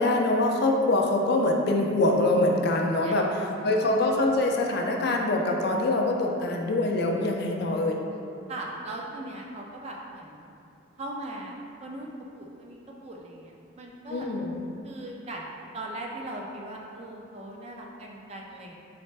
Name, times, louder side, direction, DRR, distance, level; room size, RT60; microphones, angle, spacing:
voice 1, 0.0-3.2 3.6-8.0 14.1-14.5, left 2 dB, 50° left, 1 dB, 0.4 m, -24 dB
voice 2, 3.0-4.1 8.5-10.5 11.0-14.3 14.8-15.4 15.7-18.7, right 1 dB, 30° right, -1 dB, 0.4 m, -39 dB
4.2 x 3.2 x 3.2 m, 2.5 s
head